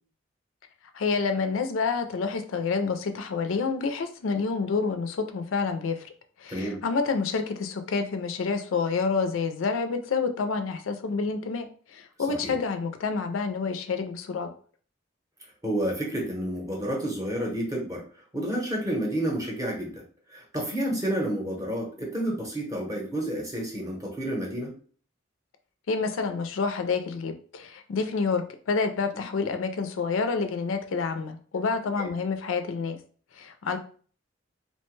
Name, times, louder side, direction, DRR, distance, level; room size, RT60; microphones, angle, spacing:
voice 1, 0.9-6.1 6.4-11.7 11.9-14.5 25.9-33.0 33.4-33.8, left 4 dB, 75° left, 7 dB, 0.4 m, -28 dB
voice 2, 6.5-6.8 12.3-12.6 15.6-18.0 18.3-20.0 20.3-24.7 32.0-32.1, right 1 dB, 15° right, -1 dB, 0.7 m, -30 dB
2.8 x 2.1 x 3.1 m, 0.44 s
head